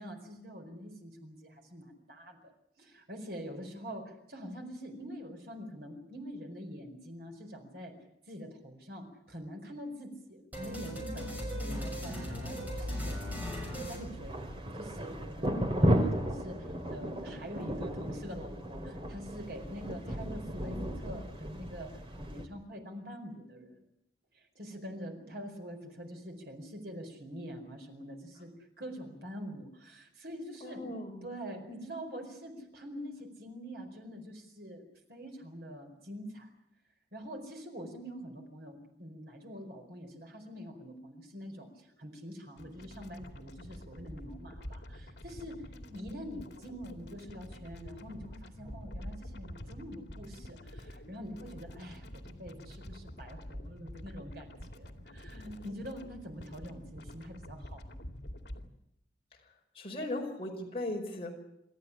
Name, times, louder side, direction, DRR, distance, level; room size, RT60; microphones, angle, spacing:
voice 1, 0.0-2.5 2.8-8.0 8.3-23.8 24.3-28.5 28.8-34.8 35.1-36.5 37.1-58.0, equal, 65° right, 4 dB, 4.6 m, -45 dB
sound 1, 10.5-14.8, equal, 10° right, 6.4 m, -38 dB
sound 2, 12.7-22.5, equal, 30° right, 2.3 m, -34 dB
voice 2, 30.6-31.2 59.7-61.3, left 1 dB, 35° left, 0 dB, 5.2 m, -37 dB
sound 3, 42.6-58.7, equal, 75° left, 2.5 m, -47 dB
27.5 x 13.5 x 9.9 m, 0.83 s
head